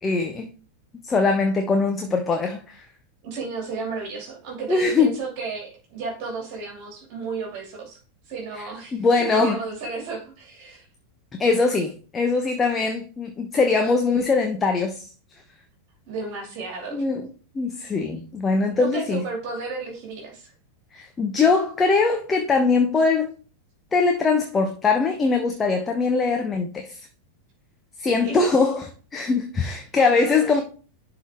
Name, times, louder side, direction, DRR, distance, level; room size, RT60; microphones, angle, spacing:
voice 1, 0.0-0.5 1.0-2.9 4.7-5.1 8.6-9.6 11.4-15.1 16.9-17.3 17.5-19.2 20.9-23.3 23.9-27.1 28.0-28.8 29.1-30.6, left 4 dB, 20° left, 0.9 m, -22 dB
voice 2, 3.2-8.0 8.3-10.8 16.1-17.0 18.8-20.5 28.3-28.7, right 4 dB, 45° right, 2.5 m, -33 dB
11.5 x 3.9 x 3.6 m
figure-of-eight pair, 90°, 0 cm